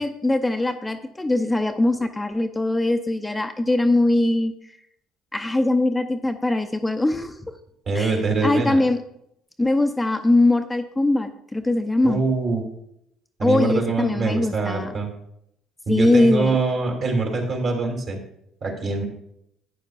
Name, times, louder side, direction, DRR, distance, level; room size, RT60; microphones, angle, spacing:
voice 1, 0.0-4.5 5.3-7.5 7.9-8.1 8.4-9.0 9.6-12.2 13.4-14.9 15.9-16.6, left 2 dB, 10° left, 6 dB, 0.6 m, -21 dB
voice 2, 7.9-8.8 12.0-12.6 13.4-15.1 15.9-18.2 18.6-19.0, right 3 dB, 50° right, 1 dB, 2.9 m, -24 dB
12.0 x 8.9 x 2.5 m, 0.77 s
hypercardioid pair, 60°, 0 cm